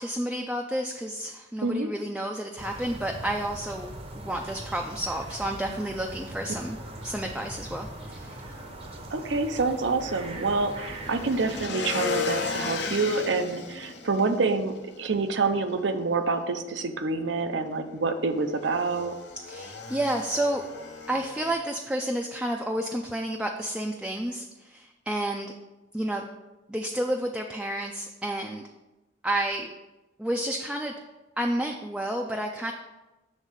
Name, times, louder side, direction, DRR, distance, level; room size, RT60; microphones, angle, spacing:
voice 1, 0.0-3.9 4.1-6.8 7.0-8.4 19.5-20.6 21.1-25.5 25.9-26.3 26.7-28.6 29.2-29.7 30.2-30.9 31.4-32.7, right 1 dB, 5° right, 1 dB, 0.4 m, -30 dB
sound 1, 2.6-11.7, right 1 dB, 35° right, 0.7 m, -41 dB
Motorcycle / Engine, 4.1-21.5, left 5 dB, 65° left, 0.9 m, -38 dB
voice 2, 9.1-19.1, right 3 dB, 80° right, 8 dB, 0.6 m, -27 dB
7.4 x 3.6 x 6.3 m, 1.1 s
head